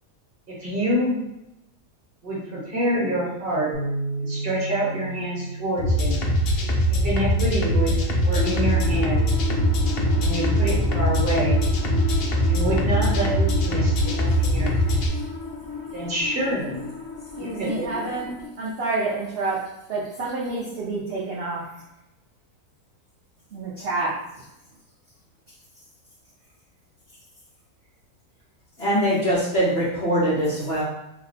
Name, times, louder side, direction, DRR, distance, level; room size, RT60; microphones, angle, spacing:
voice 1, 0.5-1.2 2.2-3.7 4.2-6.2 6.9-8.0 8.2-9.2 10.2-11.6 12.5-15.0 15.9-16.8 17.4-18.3, right 1 dB, 40° right, -6 dB, 1.1 m, -27 dB
Bass guitar, 3.7-10.0, right 2 dB, 70° left, 1.1 m, -35 dB
sound 1, 5.8-15.1, equal, 85° left, 0.5 m, -22 dB
sound 2, 8.3-18.5, left 4 dB, 35° left, 1.1 m, -33 dB
voice 2, 17.4-21.8 23.5-24.5, right 3 dB, 65° right, -5 dB, 0.6 m, -29 dB
voice 3, 28.8-30.8, equal, 50° left, -7 dB, 0.9 m, -22 dB
2.9 x 2.1 x 3.9 m, 0.89 s
omnidirectional pair, 1.7 m